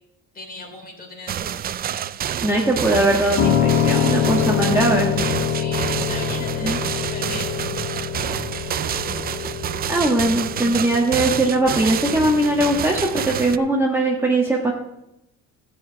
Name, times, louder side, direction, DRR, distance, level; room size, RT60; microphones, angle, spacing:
voice 1, 0.3-1.6 5.5-7.5, left 3 dB, 30° left, 1 dB, 3.4 m, -38 dB
sound 1, 1.3-13.6, right 9 dB, 30° right, 0.4 m, -28 dB
voice 2, 2.4-5.1 6.6-6.8 9.9-14.7, right 1 dB, 10° right, -2 dB, 1.4 m, -20 dB
Piano, 3.4-13.5, left 8 dB, 85° left, 2.2 m, -25 dB
13.5 x 4.9 x 8.7 m, 0.88 s
cardioid pair, 130°, 30 cm